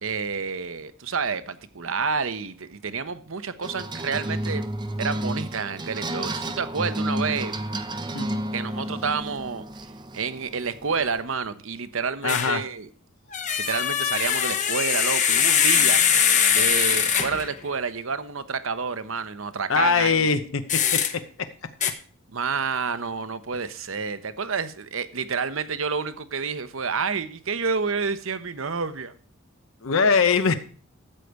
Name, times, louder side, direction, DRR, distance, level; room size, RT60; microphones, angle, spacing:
voice 1, 0.0-4.6 5.0-7.5 8.5-9.7 10.1-12.9 13.6-16.0 16.5-20.2 22.3-29.1, right 5 dB, 70° right, 0.8 m, -29 dB
sound 1, 3.6-11.2, right 1 dB, 20° right, 0.7 m, -31 dB
voice 2, 12.2-12.6 19.7-20.6 20.9-21.0 29.8-30.6, left 5 dB, 70° left, 0.8 m, -21 dB
sound 2, 12.3-12.6 13.3-17.5 20.7-21.1 21.8-21.9, left 8 dB, 35° left, 1.0 m, -22 dB
13.0 x 4.9 x 8.1 m
head